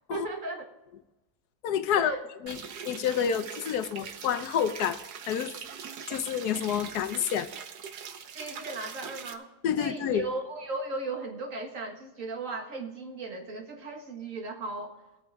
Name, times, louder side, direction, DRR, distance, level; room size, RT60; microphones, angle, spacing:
voice 1, 0.1-0.7 2.0-2.2 8.4-15.0, right 3 dB, 55° right, 4 dB, 1.9 m, -36 dB
voice 2, 1.6-2.1 2.4-5.0 5.3-5.5 6.1-7.5 9.6-10.3, left 8 dB, 85° left, 11 dB, 1.3 m, -28 dB
sound 1, 2.5-9.3, right 7 dB, 85° right, 1.4 m, -42 dB
19.5 x 8.4 x 3.5 m, 0.99 s
omnidirectional pair, 1.7 m